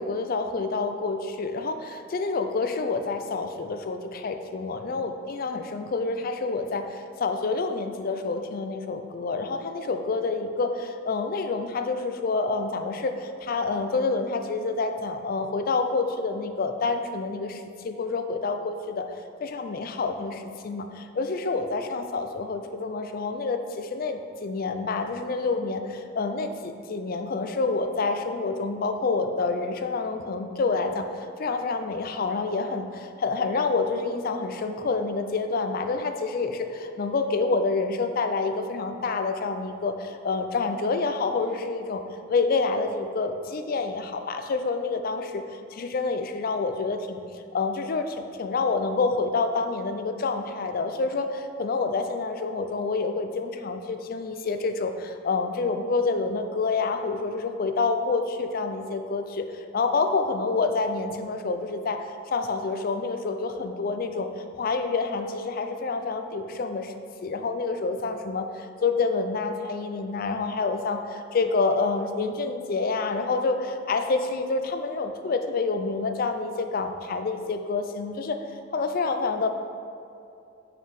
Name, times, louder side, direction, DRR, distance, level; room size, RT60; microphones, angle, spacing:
voice 1, 0.0-19.1 19.4-42.0 42.3-51.3 51.6-66.9 67.2-79.5, left 4 dB, 50° left, 7 dB, 0.4 m, -28 dB
6.0 x 4.5 x 5.2 m, 2.6 s
head